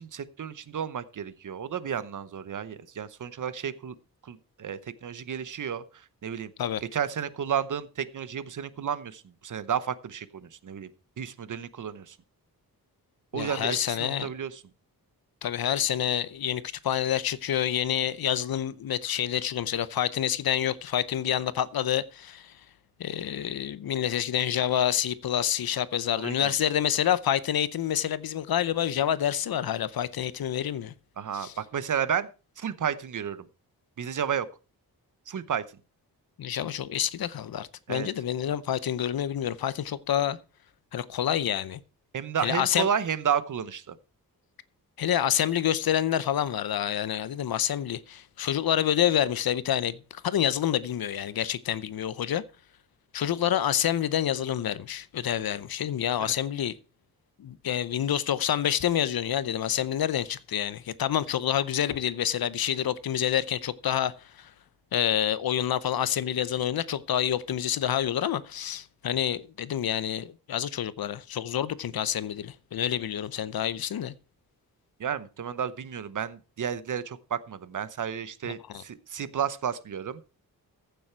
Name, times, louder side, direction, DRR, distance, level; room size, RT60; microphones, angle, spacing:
voice 1, 0.0-3.9 4.2-6.5 6.9-10.9 11.2-12.2 13.3-14.6 26.1-26.5 31.2-32.3 32.6-33.5 34.0-34.5 35.3-35.6 37.9-38.1 42.1-44.0 56.2-56.3 75.0-80.2, right 8 dB, 55° right, 0.9 m, -32 dB
voice 2, 13.3-14.3 15.4-22.5 23.0-30.9 31.3-31.5 36.4-40.4 40.9-41.8 42.4-42.9 45.0-52.4 53.1-56.7 57.4-64.5 64.9-74.1 78.5-78.8, left 10 dB, 70° left, 0.8 m, -28 dB
15.0 x 6.9 x 4.5 m
wide cardioid pair, 165°, 37 cm